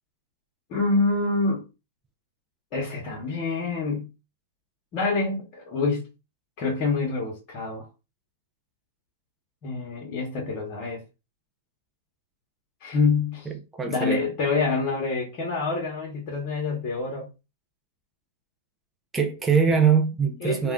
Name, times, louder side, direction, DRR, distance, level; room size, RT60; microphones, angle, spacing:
voice 1, 0.7-1.6 2.7-4.1 4.9-6.1 6.6-7.9 9.6-11.0 12.8-13.5 13.8-17.3 20.4-20.7, left 3 dB, 35° left, 0.9 m, -26 dB
voice 2, 13.7-14.2 19.1-20.7, right 6 dB, 10° right, 0.4 m, -22 dB
2.4 x 2.2 x 3.5 m
hypercardioid pair, 150°, 0 cm